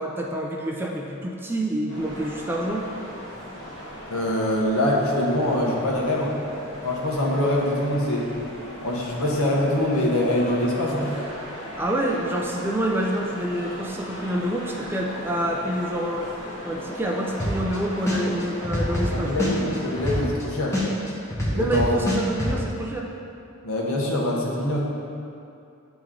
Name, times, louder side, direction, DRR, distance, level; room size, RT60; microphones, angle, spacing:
voice 1, 0.0-2.9 11.8-16.3 16.6-19.5 21.5-23.1, right 1 dB, 10° right, -1 dB, 0.3 m, -27 dB
sound 1, 1.9-20.3, equal, 35° left, 1.3 m, -38 dB
voice 2, 4.1-6.4 6.8-8.3 8.8-11.1 19.1-20.7 21.5-21.9 23.6-24.8, left 1 dB, 70° left, -3 dB, 1.0 m, -24 dB
sound 2, 17.4-17.8 18.1-20.4 20.7-22.5, left 1 dB, 15° left, 0.9 m, -25 dB
8.4 x 3.0 x 3.7 m, 2.6 s
head